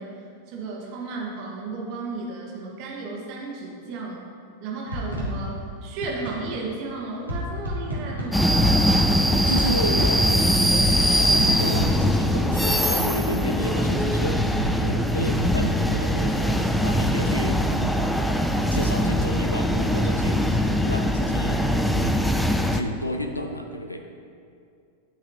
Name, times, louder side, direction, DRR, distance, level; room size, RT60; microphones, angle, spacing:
voice 1, 0.0-4.3 4.6-8.9, right 3 dB, 45° right, -2 dB, 1.6 m, -34 dB
sound 1, 4.9-6.5 7.3-9.5 10.4-10.5 10.6-12.7 13.4-13.9 14.3-16.2, equal, 90° right, 1.5 m, -30 dB
sound 2, 8.3-22.8, equal, 5° left, 0.4 m, -22 dB
voice 2, 9.5-18.0 18.7-22.4 22.7-24.0, equal, 85° left, 5 dB, 0.4 m, -32 dB
11.0 x 4.7 x 3.1 m, 2.4 s
figure-of-eight pair, 90°, 0 cm